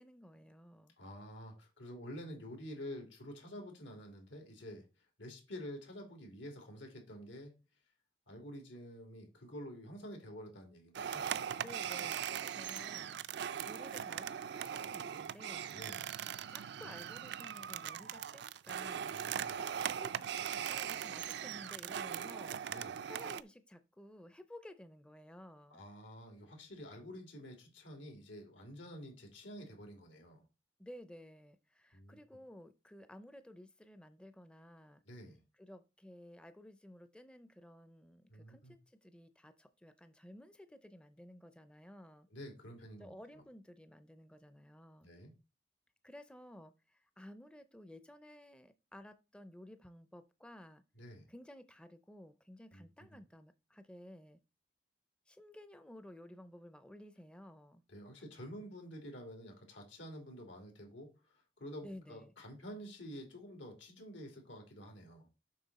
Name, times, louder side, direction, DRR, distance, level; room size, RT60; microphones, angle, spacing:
voice 1, 0.0-0.9 11.6-13.2 13.7-15.8 16.5-19.2 19.6-22.6 23.0-25.8 30.8-35.0 35.5-42.3 43.0-45.1 46.0-50.8 51.3-54.4 55.3-57.8 61.8-62.3, left 1 dB, 5° left, 0.4 m, -55 dB
voice 2, 1.0-4.9 5.2-7.6 8.3-11.3 15.7-16.1 19.1-19.6 22.7-23.0 25.7-30.4 31.9-32.2 35.1-35.4 38.3-38.7 42.3-43.4 45.0-45.3 51.0-51.3 52.7-52.8 57.9-65.3, equal, 90° left, 2.8 m, -49 dB
sound 1, 10.9-23.4, right 9 dB, 65° right, 0.4 m, -40 dB
7.6 x 5.8 x 4.1 m
head